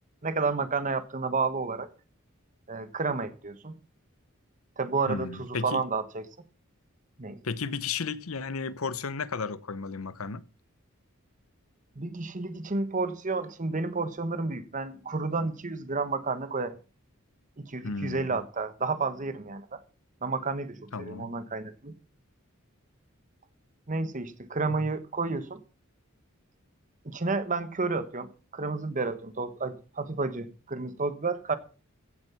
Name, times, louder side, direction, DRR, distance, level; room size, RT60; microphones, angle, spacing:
voice 1, 0.2-1.9 2.7-3.8 4.8-6.3 7.2-7.4 11.9-16.7 17.6-19.8 20.2-21.9 23.9-25.6 27.0-31.5, right 3 dB, 40° right, 1.2 m, -31 dB
voice 2, 5.1-5.8 7.4-10.4 17.8-18.4 20.9-21.3 24.7-24.9, left 5 dB, 90° left, 0.9 m, -34 dB
16.0 x 7.4 x 5.8 m
head